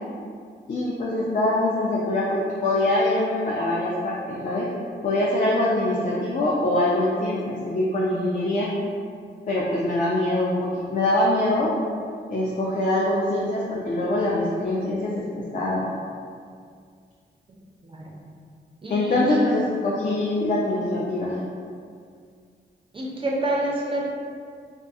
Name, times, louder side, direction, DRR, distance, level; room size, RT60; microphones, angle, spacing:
voice 1, 0.7-4.7 5.0-8.7 9.5-11.7 12.3-15.2 15.5-16.0 18.9-21.4, left 1 dB, 45° left, -5 dB, 0.4 m, -23 dB
voice 2, 17.8-18.2 18.8-19.5 22.9-24.1, right 1 dB, 25° right, -4 dB, 0.4 m, -28 dB
2.3 x 2.2 x 2.6 m, 2.2 s
wide cardioid pair, 90°, 19 cm